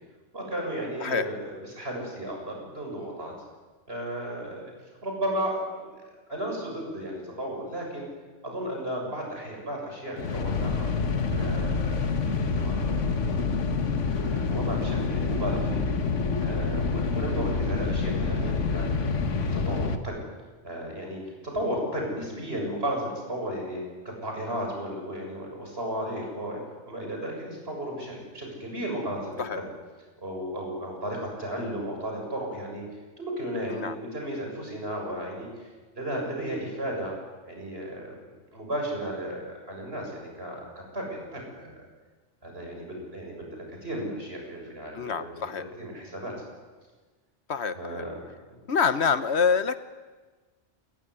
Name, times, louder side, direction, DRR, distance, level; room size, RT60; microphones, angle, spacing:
voice 1, 0.3-3.3 3.9-4.7 5.0-8.1 8.4-10.9 11.3-13.4 14.2-15.9 16.4-18.9 19.5-20.2 20.6-29.7 30.2-32.8 33.2-35.7 36.0-37.2 37.5-41.9 42.4-46.3 47.7-48.1, right 1 dB, 55° right, 0 dB, 7.2 m, -34 dB
voice 2, 1.0-1.3 29.4-29.6 33.7-34.0 44.9-45.6 47.5-48.0 48.7-49.8, left 6 dB, 65° left, 12 dB, 1.3 m, -26 dB
sound 1, 10.2-20.0, left 4 dB, 90° left, 1.8 m, -27 dB
29.5 x 15.5 x 9.7 m, 1.3 s
omnidirectional pair, 1.2 m